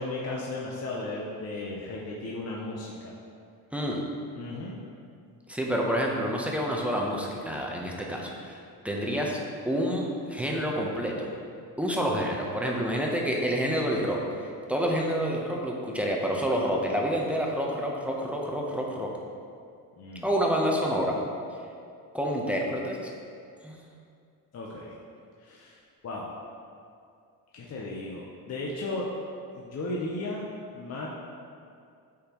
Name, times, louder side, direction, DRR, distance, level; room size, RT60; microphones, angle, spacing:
voice 1, 0.0-3.1 4.4-4.7 20.0-20.3 24.5-25.0 25.4-25.8 26.0-26.3 27.5-29.0 29.6-30.5 30.7-31.1, left 2 dB, 40° left, -3 dB, 0.8 m, -35 dB
voice 2, 5.5-8.6 8.8-9.4 9.7-11.3 11.8-19.1 20.2-21.1 22.1-23.0 23.6-23.8, equal, 5° right, -2 dB, 0.8 m, -28 dB
8.4 x 4.3 x 3.0 m, 2.4 s
cardioid pair, 105°, 39 cm